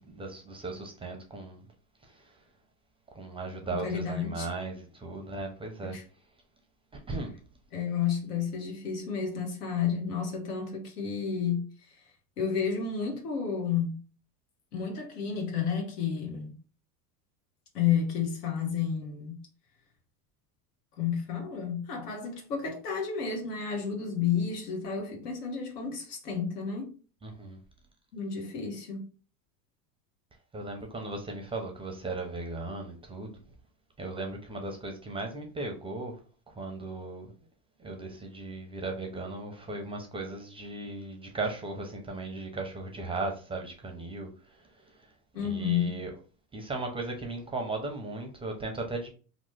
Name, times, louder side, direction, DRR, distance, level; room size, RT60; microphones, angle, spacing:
voice 1, 0.1-1.6 3.2-5.9 7.1-7.3 27.2-27.6 30.5-33.3 34.0-36.1 36.6-37.3 37.8-44.3 45.4-46.1 46.5-49.1, right 2 dB, 10° right, 0.5 m, -37 dB
voice 2, 3.7-4.5 5.8-6.0 7.7-11.6 12.4-14.0 14.7-16.5 17.7-19.4 21.0-26.9 28.1-29.0 45.3-46.0, left 7 dB, 90° left, 1.2 m, -31 dB
3.0 x 2.0 x 3.2 m
supercardioid pair, 105°, 45 cm